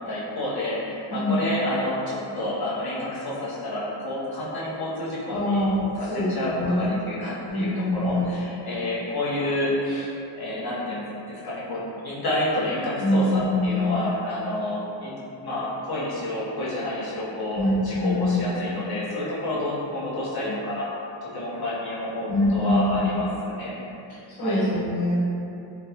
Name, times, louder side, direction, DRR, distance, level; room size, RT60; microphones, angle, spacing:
voice 1, 0.1-5.7 6.0-15.1 15.4-20.9 21.2-23.7 24.4-24.6, left 1 dB, 55° left, -8 dB, 0.8 m, -29 dB
voice 2, 1.1-1.4 5.3-7.0 7.5-8.3 13.0-14.0 17.5-18.5 22.3-23.2 24.3-25.2, left 1 dB, 75° left, -11 dB, 1.4 m, -24 dB
3.2 x 2.2 x 2.7 m, 2.8 s
wide cardioid pair, 110°, 46 cm